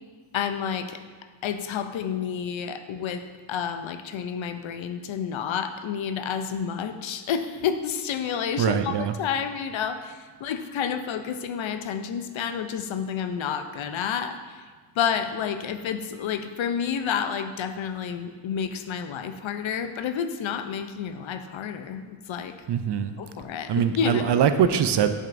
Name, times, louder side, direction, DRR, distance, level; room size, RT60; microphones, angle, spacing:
voice 1, 0.3-1.0 1.4-14.7 15.0-22.6 23.2-24.3, left 7 dB, 65° left, 8 dB, 0.6 m, -30 dB
voice 2, 8.6-9.1 22.7-23.1 23.7-25.1, right 8 dB, 55° right, 9 dB, 0.5 m, -22 dB
7.3 x 5.3 x 2.6 m, 1.5 s
cardioid pair, 55°, 50 cm